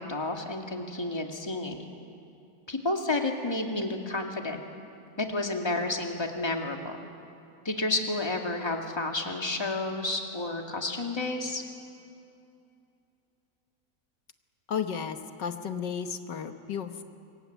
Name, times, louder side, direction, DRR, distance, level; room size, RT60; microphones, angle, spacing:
voice 1, 0.0-1.8 2.7-4.6 5.2-7.0 7.6-11.6, left 2 dB, 15° left, 2 dB, 2.0 m, -31 dB
voice 2, 14.7-17.0, left 7 dB, 80° left, 8 dB, 1.7 m, -33 dB
25.5 x 22.5 x 9.2 m, 2.7 s
omnidirectional pair, 1.9 m